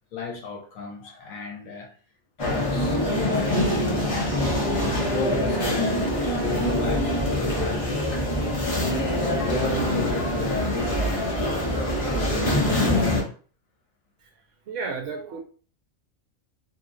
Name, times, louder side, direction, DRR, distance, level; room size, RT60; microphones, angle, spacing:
voice 1, 0.1-1.9 2.4-4.6 5.0-8.2 8.8-11.7, left 3 dB, 70° left, 1.2 m, -34 dB
sound 1, 2.4-13.2, left 1 dB, 30° left, 0.7 m, -24 dB
voice 2, 14.7-15.4, right 4 dB, 70° right, 0.9 m, -32 dB
2.8 x 2.7 x 2.5 m
omnidirectional pair, 1.5 m